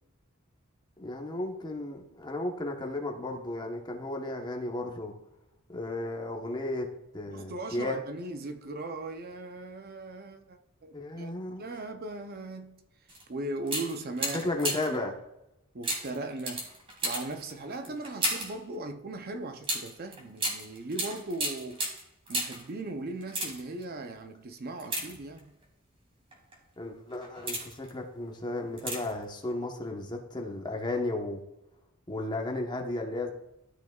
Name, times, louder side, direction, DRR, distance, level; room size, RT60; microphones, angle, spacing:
voice 1, 1.0-5.1 5.7-6.9 7.1-8.0 10.9-11.7 14.3-15.1 26.8-31.4 32.1-33.3, left 2 dB, 20° left, 1.0 m, -34 dB
voice 2, 7.3-11.3 11.6-12.8 13.3-14.5 14.9-15.0 15.7-16.7 17.0-21.8 22.3-25.5, right 2 dB, 45° right, 0.6 m, -38 dB
sound 1, 13.1-13.2 13.6-15.0 15.8-18.6 19.6-22.7 23.2-23.8 24.8-25.6 26.3-26.5 27.1-27.9 28.8-29.2 29.5-29.6, right 1 dB, 25° right, 2.2 m, -34 dB
13.0 x 6.0 x 2.4 m
head